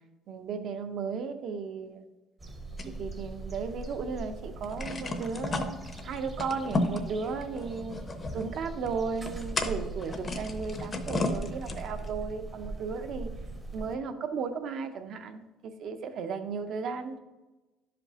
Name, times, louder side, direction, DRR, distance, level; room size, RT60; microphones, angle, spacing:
voice 1, 0.3-2.1 3.0-5.8 6.0-8.0 8.3-13.3 13.7-17.2, right 5 dB, 50° right, 8 dB, 0.7 m, -35 dB
sound 1, 2.4-14.0, right 2 dB, 20° right, 0.8 m, -41 dB
sound 2, 2.8-4.0 4.2-4.3 4.6-12.1, left 2 dB, 25° left, 0.6 m, -34 dB
11.0 x 5.1 x 2.9 m, 1.1 s
cardioid pair, 145°, 0 cm